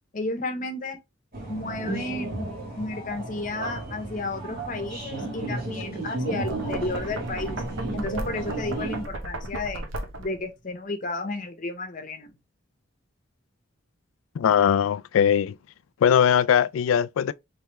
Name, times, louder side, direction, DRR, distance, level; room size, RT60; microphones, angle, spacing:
voice 1, 0.1-1.0 1.5-7.6 7.9-9.8 10.2-12.3, left 2 dB, 40° left, 0.9 m, -32 dB
sound 1, 1.3-9.0, right 2 dB, 50° right, 1.7 m, -33 dB
Knock, 6.4-10.5, right 2 dB, 75° right, 0.7 m, -36 dB
voice 2, 14.4-15.6 16.0-17.3, left 8 dB, 90° left, 0.3 m, -20 dB
3.4 x 3.1 x 3.3 m
head